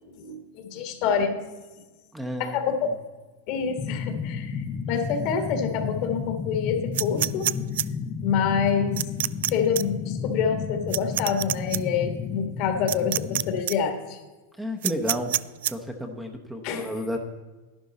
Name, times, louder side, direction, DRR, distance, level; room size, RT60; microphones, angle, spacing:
voice 1, 0.0-1.3 2.4-2.9 3.5-7.5 8.2-9.0 9.5-14.2 16.6-16.9, left 6 dB, 50° left, 6 dB, 1.7 m, -27 dB
voice 2, 2.1-2.8 14.6-15.3 15.7-17.2, equal, 5° right, 3 dB, 1.0 m, -31 dB
sound 1, 3.8-13.6, left 5 dB, 25° left, 0.7 m, -32 dB
sound 2, 6.9-7.8 9.0-9.5 9.7-9.8 10.9-11.8 12.9-13.4 13.7-13.8 14.8-15.7, right 13 dB, 75° right, 0.3 m, -25 dB
11.5 x 10.5 x 4.1 m, 1.2 s
supercardioid pair, 135°, 0 cm